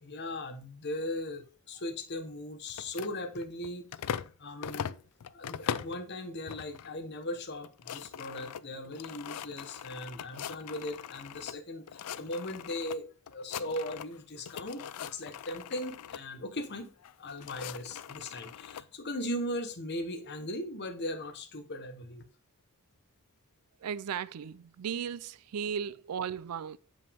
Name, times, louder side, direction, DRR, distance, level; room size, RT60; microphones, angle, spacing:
voice 1, 0.0-3.9 4.4-5.0 5.3-16.9 17.2-22.2, left 1 dB, 50° left, 1.1 m, -38 dB
sound 1, 2.7-4.3 4.6-6.0 6.5-6.9 7.2-7.3 7.6-11.6 11.9-13.0 13.3-14.2 14.5-16.2 17.0-18.8, left 8 dB, 90° left, 0.4 m, -41 dB
voice 2, 23.8-26.8, right 7 dB, 85° right, 0.4 m, -36 dB
7.1 x 5.4 x 3.5 m
head